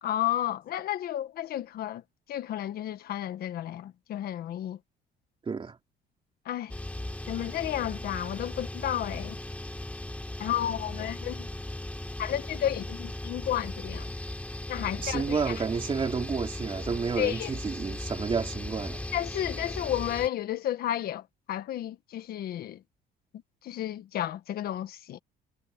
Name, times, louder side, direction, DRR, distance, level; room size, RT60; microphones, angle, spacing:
voice 1, 0.0-2.0 2.3-4.8 6.4-6.7 7.3-9.4 10.4-11.5 12.2-14.1 14.7-15.5 17.2-17.5 19.1-22.8 23.6-25.2, left 12 dB, 65° left, 1.6 m, -32 dB
voice 2, 5.5-5.8 15.0-19.1, right 5 dB, 30° right, 2.6 m, -30 dB
sound 1, 6.7-20.3, left 1 dB, 10° left, 3.3 m, -37 dB
cardioid pair, 110°, 17 cm